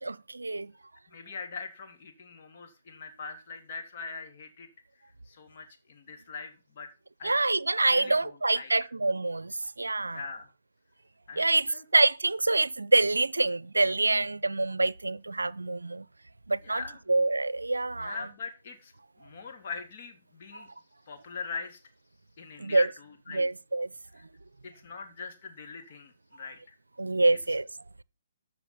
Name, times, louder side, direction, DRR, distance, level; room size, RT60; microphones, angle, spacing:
voice 1, 0.0-0.7 7.2-10.2 11.4-16.1 16.5-16.8 17.1-18.2 20.5-20.6 22.6-22.9 23.3-23.9 27.0-27.7, right 2 dB, 85° right, 0.5 m, -26 dB
voice 2, 1.1-4.7 5.2-6.9 7.2-7.3 7.9-8.7 10.1-10.5 11.3-11.8 16.6-17.0 18.0-18.9 19.2-20.7 21.1-21.8 22.4-23.4 24.1-24.2 24.6-26.7, left 5 dB, 45° left, 3.2 m, -42 dB
14.0 x 5.8 x 6.0 m
figure-of-eight pair, 135°, 0 cm